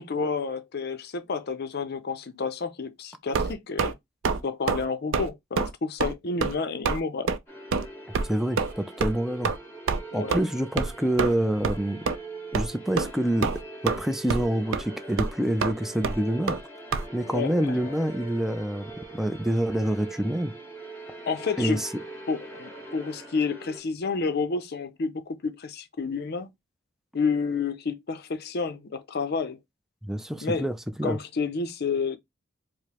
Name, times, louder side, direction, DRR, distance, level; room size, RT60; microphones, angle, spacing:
voice 1, 0.0-3.9 4.4-7.3 10.1-10.4 17.2-17.7 21.3-21.8 22.3-26.5 27.1-29.6 30.4-30.6 31.0-32.2, left 4 dB, 55° left, 0.5 m, -30 dB
sound 1, 3.3-3.9 4.2-4.4 4.7-4.9 5.1-5.3 5.6-5.7 6.0-6.1 6.4-6.6 6.9-7.0 7.3-7.4 7.7-7.9 8.1-8.3 8.6-8.7 9.0-9.1 9.4-9.6 9.9-10.0 10.3-10.4 10.8-10.9 11.2-11.4 11.6-11.8 12.1-12.2 12.5-12.7 13.0-13.1 13.4-14.0 14.3-14.5 14.7-14.8 15.2-15.3 15.6-15.7 16.0-16.2 16.5-16.6 16.9-17.0, right 4 dB, 80° right, 0.4 m, -26 dB
sound 2, 7.5-23.8, right 2 dB, 15° left, 1.5 m, -43 dB
voice 2, 8.3-9.5 10.1-12.0 12.5-13.5 13.8-16.6 17.1-20.5 21.6-21.9 30.0-31.2, right 1 dB, ahead, 0.3 m, -27 dB
4.8 x 2.0 x 2.9 m
head